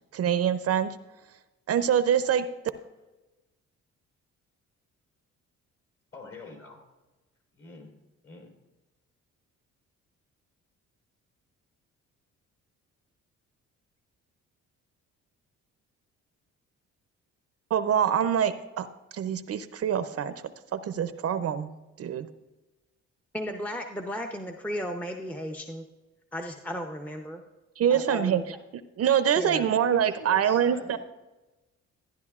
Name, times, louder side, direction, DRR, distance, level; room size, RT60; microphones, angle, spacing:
voice 1, 0.1-0.9 1.7-2.5 17.7-18.9 19.1-20.3 20.7-21.7 22.0-22.3 27.8-28.4 29.0-31.0, right 9 dB, 55° right, 12 dB, 0.5 m, -25 dB
voice 2, 6.1-6.8 7.5-7.9 8.2-8.5 29.6-31.0, left 3 dB, 50° left, 2 dB, 3.3 m, -44 dB
voice 3, 23.3-25.9 26.3-27.4 27.9-28.6 29.4-29.7, equal, 5° left, 3 dB, 0.6 m, -35 dB
13.0 x 10.5 x 2.4 m, 1.1 s
cardioid pair, 90°, 30 cm